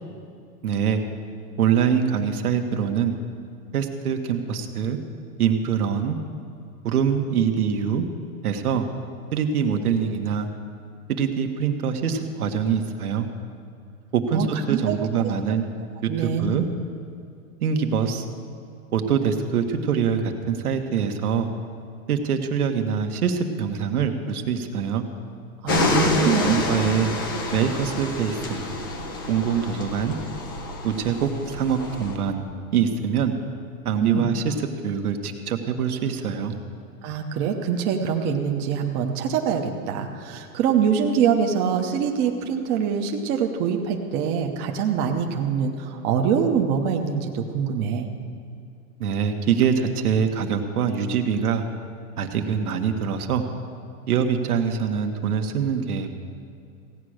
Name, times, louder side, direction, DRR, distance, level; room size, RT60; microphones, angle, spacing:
voice 1, 0.6-1.0 1.6-3.2 3.7-5.0 5.4-6.2 6.8-8.1 8.4-8.9 9.3-10.5 11.1-13.3 14.1-15.7 16.0-16.7 17.6-18.2 18.9-21.5 22.1-25.1 25.9-27.1 27.5-28.6 29.3-30.2 30.8-33.3 33.8-34.5 34.8-36.6 49.0-51.6 52.2-53.4 54.1-56.1, right 7 dB, 80° right, 5 dB, 1.5 m, -24 dB
voice 2, 14.3-15.0 16.1-16.6 25.6-25.9 26.2-26.7 34.0-34.3 37.0-48.1, right 7 dB, 25° right, 2 dB, 0.8 m, -24 dB
sound 1, 25.7-32.2, left 2 dB, 15° left, 0.3 m, -28 dB
16.0 x 8.7 x 6.4 m, 2.5 s
hypercardioid pair, 150°, 44 cm